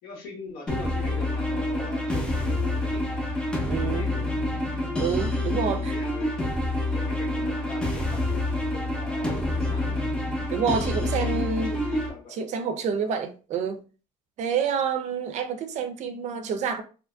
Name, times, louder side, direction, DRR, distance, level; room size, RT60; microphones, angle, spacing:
voice 1, 0.0-3.3 3.6-4.3 5.6-10.0 11.0-12.4 13.0-13.1, left 3 dB, 75° left, 1.2 m, -42 dB
sound 1, 0.7-12.1, left 1 dB, 5° left, 0.5 m, -27 dB
voice 2, 3.7-4.1 5.0-6.0 10.5-11.7 12.4-13.8 14.4-16.8, right 6 dB, 50° right, 0.4 m, -28 dB
2.7 x 2.5 x 2.3 m
cardioid pair, 165°, 16 cm